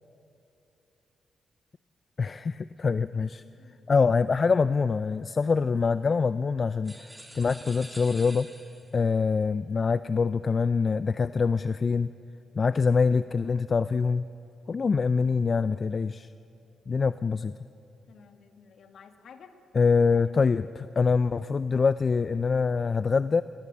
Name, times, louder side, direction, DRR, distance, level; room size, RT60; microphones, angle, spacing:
voice 1, 2.2-3.4 3.9-7.1 7.3-8.5 8.9-12.1 12.6-14.2 14.7-16.3 16.9-17.5 19.7-23.4, left 5 dB, 45° left, 14 dB, 0.4 m, -24 dB
voice 2, 3.4-3.8 18.1-19.5 20.1-20.4, left 6 dB, 70° left, 6 dB, 1.7 m, -52 dB
sound 1, 6.8-9.0, right 1 dB, 10° right, 3.5 m, -47 dB
19.5 x 18.5 x 8.2 m, 2.8 s
supercardioid pair, 60°, 0 cm